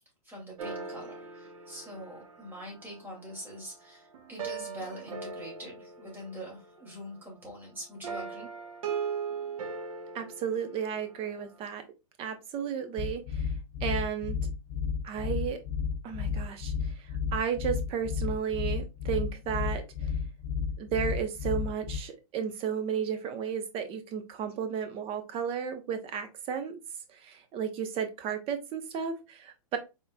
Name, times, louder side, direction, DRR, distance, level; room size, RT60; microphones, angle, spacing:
voice 1, 0.2-8.5, equal, 10° right, -2 dB, 2.2 m, -44 dB
sound 1, 0.6-3.6 4.1-6.9 8.0-11.3, right 6 dB, 65° right, 1.0 m, -39 dB
voice 2, 10.1-11.8 12.2-13.5 13.8-14.4 15.0-15.6 16.0-20.1 20.8-26.7 27.1-29.8, right 7 dB, 30° right, 8 dB, 0.8 m, -33 dB
sound 2, 13.0-22.0, left 6 dB, 45° left, 0.5 m, -32 dB
4.2 x 3.7 x 2.2 m, 0.26 s
hypercardioid pair, 120°, 19 cm